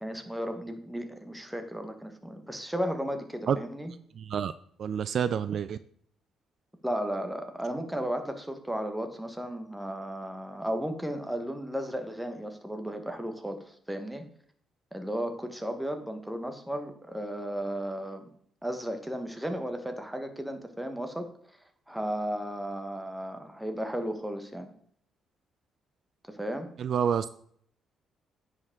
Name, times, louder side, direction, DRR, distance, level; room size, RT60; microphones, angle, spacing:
voice 1, 0.0-3.9 6.8-14.2 14.9-18.3 18.6-21.3 21.9-24.7 26.3-26.7, equal, 5° right, 6 dB, 1.2 m, -34 dB
voice 2, 4.2-4.5 4.8-5.8 26.8-27.3, right 8 dB, 60° right, 14 dB, 0.3 m, -28 dB
9.6 x 5.0 x 3.7 m, 0.64 s
cardioid pair, 90°, 0 cm